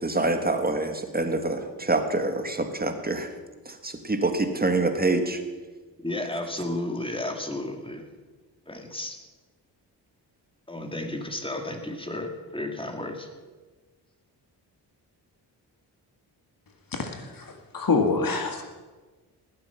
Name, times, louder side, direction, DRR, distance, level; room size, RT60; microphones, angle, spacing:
voice 1, 0.0-3.3 3.7-5.4, right 2 dB, 20° right, 7 dB, 1.7 m, -26 dB
voice 2, 6.0-8.1 8.7-9.2 10.7-13.3, left 1 dB, 10° left, 3 dB, 2.1 m, -33 dB
voice 3, 16.9-18.6, left 4 dB, 50° left, 4 dB, 1.8 m, -26 dB
19.5 x 7.8 x 5.8 m, 1.3 s
cardioid pair, 60°, 42 cm